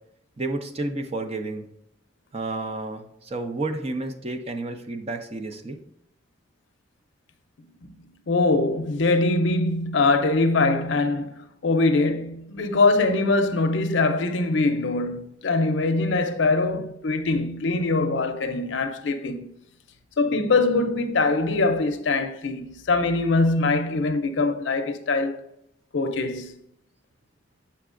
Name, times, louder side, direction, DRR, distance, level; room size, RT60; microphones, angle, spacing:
voice 1, 0.4-1.7 2.3-5.8, right 2 dB, 30° right, 0.5 m, -31 dB
voice 2, 8.3-19.5 20.2-25.4 25.9-26.5, left 3 dB, 70° left, 0.5 m, -23 dB
7.1 x 5.7 x 2.5 m
head